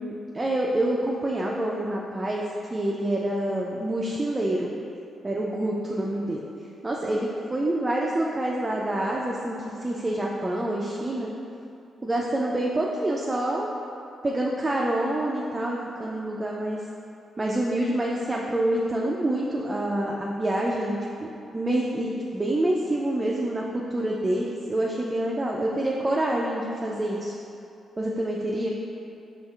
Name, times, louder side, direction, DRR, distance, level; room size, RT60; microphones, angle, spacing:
voice 1, 0.0-2.5 2.7-4.7 5.2-6.4 6.8-11.3 12.0-13.7 14.2-16.8 17.4-23.6 23.9-27.3 28.0-28.7, right 1 dB, 30° right, -3 dB, 0.3 m, -27 dB
4.2 x 3.1 x 2.3 m, 2.7 s
hypercardioid pair, 45°, 0 cm